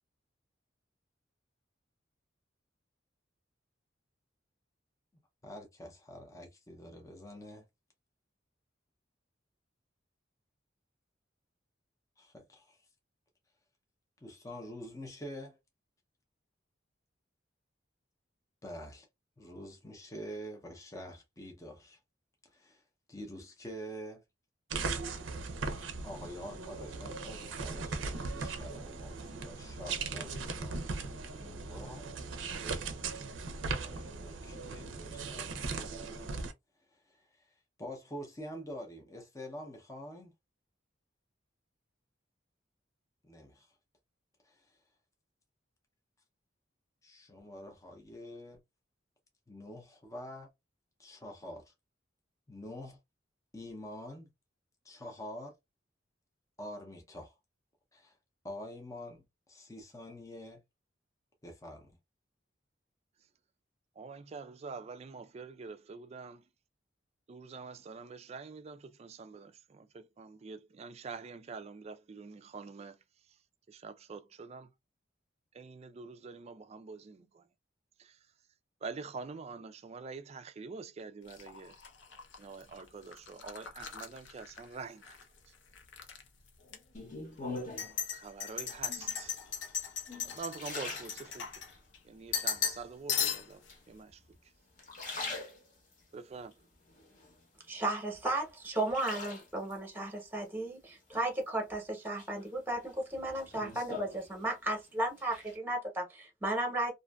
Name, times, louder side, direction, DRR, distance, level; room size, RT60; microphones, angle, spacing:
voice 1, 5.4-7.7 12.2-12.9 14.2-15.6 18.6-19.1 19.4-22.0 22.4-22.8 23.1-24.2 26.0-32.1 33.6-36.5 36.8-40.3 43.2-43.8 44.4-44.8 47.0-48.6 49.5-50.5 51.0-51.7 52.5-53.0 53.5-54.3 54.8-55.5 56.6-57.4 57.9-58.2 58.4-60.6 61.4-62.0, equal, 20° left, 0.6 m, -47 dB
sound 1, 24.7-36.5, right 4 dB, 90° right, 0.5 m, -38 dB
voice 2, 64.0-66.5 67.3-73.0 73.7-74.7 75.5-77.4 78.0-78.2 78.8-81.8 82.4-85.2 88.1-89.4 90.2-91.5 92.0-94.2 96.1-96.6, right 4 dB, 35° right, 0.3 m, -46 dB
sound 2, 81.3-85.2 85.5-86.2 86.7-86.8 87.6-92.0 92.3-92.8 93.1-93.7, left 7 dB, 75° left, 0.6 m, -37 dB
sound 3, 86.9-88.0 88.8-89.3 89.8-91.8 92.3-92.9 93.7-94.4 94.7-96.0 96.5-97.7 98.1-99.8 101.1-101.7 102.2-104.8 105.0-105.6, left 3 dB, 45° left, 0.9 m, -44 dB
voice 3, 97.7-106.9, right 1 dB, 10° right, 0.9 m, -34 dB
2.5 x 2.4 x 2.2 m
head